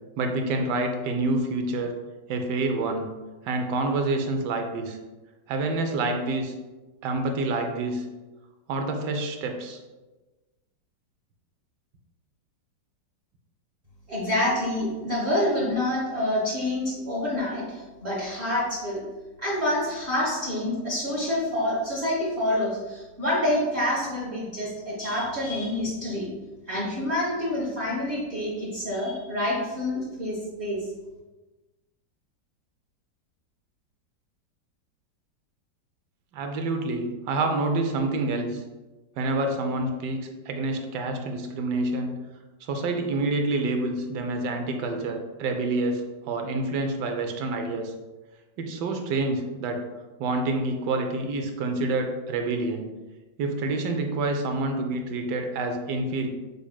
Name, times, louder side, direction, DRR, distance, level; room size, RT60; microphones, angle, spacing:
voice 1, 0.2-1.9 2.3-3.1 3.4-5.0 5.5-6.5 7.0-8.0 8.7-9.8 36.3-38.6 39.2-42.2 42.6-47.9 48.6-49.8 50.2-52.9 53.4-56.3, right 2 dB, 75° right, 5 dB, 1.2 m, -27 dB
voice 2, 14.1-19.0 19.4-26.3 26.7-30.8, left 1 dB, 25° right, -7 dB, 1.2 m, -27 dB
6.4 x 3.4 x 2.3 m, 1.2 s
omnidirectional pair, 2.0 m